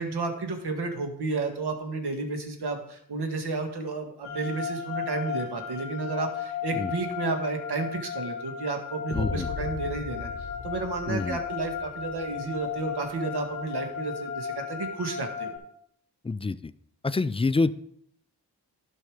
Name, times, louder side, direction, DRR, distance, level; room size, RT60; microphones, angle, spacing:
voice 1, 0.0-15.5, right 3 dB, 70° right, 5 dB, 1.7 m, -32 dB
sound 1, 4.2-15.6, left 7 dB, 55° right, 4.5 m, -35 dB
sound 2, 9.1-13.1, left 6 dB, 30° left, 1.0 m, -38 dB
voice 2, 9.1-9.5 11.1-11.4 16.2-16.6 17.0-17.7, left 3 dB, 15° left, 15 dB, 0.3 m, -26 dB
11.5 x 5.5 x 4.9 m, 0.72 s
cardioid pair, 60°, 41 cm